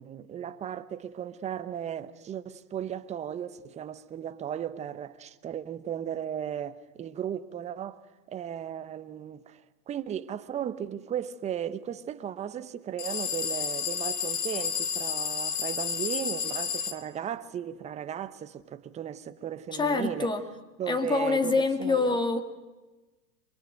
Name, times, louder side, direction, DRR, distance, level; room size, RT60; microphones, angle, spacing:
voice 1, 0.0-8.0 8.3-9.6 9.9-20.3 20.8-22.2, right 9 dB, 15° right, 1.0 m, -36 dB
sound 1, 13.0-17.0, left 7 dB, 70° left, 3.2 m, -31 dB
voice 2, 19.7-20.4 20.9-22.4, left 3 dB, 10° left, 2.2 m, -26 dB
24.5 x 23.5 x 9.2 m
hypercardioid pair, 140°, 49 cm